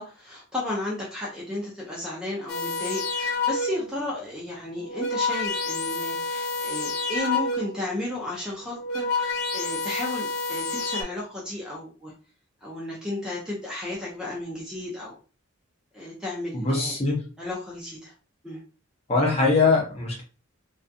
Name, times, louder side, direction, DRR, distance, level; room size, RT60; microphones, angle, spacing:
voice 1, 0.0-12.1 12.6-15.2 15.9-16.9 17.4-18.1 18.4-18.6, left 1 dB, 5° right, -4 dB, 0.5 m, -33 dB
sound 1, 2.5-4.0 4.7-7.9 8.6-11.0, left 3 dB, 90° left, 0.5 m, -29 dB
voice 2, 16.5-17.2 19.1-20.2, left 3 dB, 30° left, -2 dB, 0.7 m, -22 dB
2.4 x 2.3 x 2.5 m, 0.36 s
head